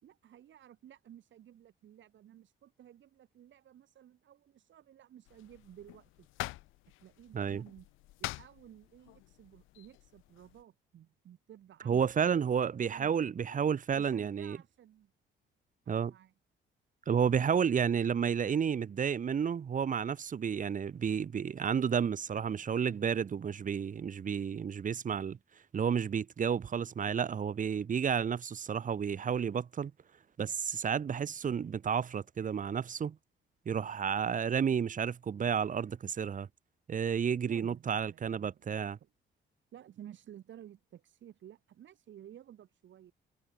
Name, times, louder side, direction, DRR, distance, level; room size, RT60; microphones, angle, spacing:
voice 1, 0.0-6.5 7.0-7.9 8.2-12.5 12.9-13.2 13.9-15.1 15.9-16.3 37.4-39.1 39.7-43.1, right 11 dB, 70° right, 5.4 m, -54 dB
sound 1, 5.3-10.6, left 19 dB, 90° left, 0.4 m, -46 dB
voice 2, 11.8-14.6 15.9-16.1 17.1-25.4 25.7-29.9 30.4-33.2 33.6-36.5 36.9-39.0, right 7 dB, 40° right, 1.0 m, -31 dB
cardioid pair, 90°, 20 cm